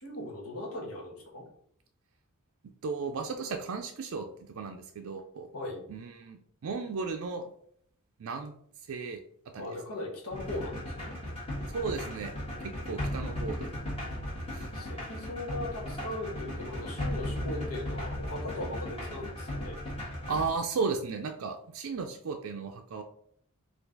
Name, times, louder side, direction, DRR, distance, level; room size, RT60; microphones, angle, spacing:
voice 1, 0.0-1.4 5.5-5.8 9.6-11.1 14.7-19.8, left 1 dB, 85° left, -1 dB, 1.3 m, -39 dB
voice 2, 2.8-5.5 5.9-7.5 8.2-8.5 8.9-9.2 9.5-9.7 11.7-12.3 12.6-13.7 14.5-14.7 20.3-23.0, right 4 dB, 70° right, 4 dB, 0.4 m, -35 dB
sound 1, 10.3-20.5, left 1 dB, 25° left, 1.5 m, -36 dB
4.5 x 2.4 x 3.8 m, 0.65 s
head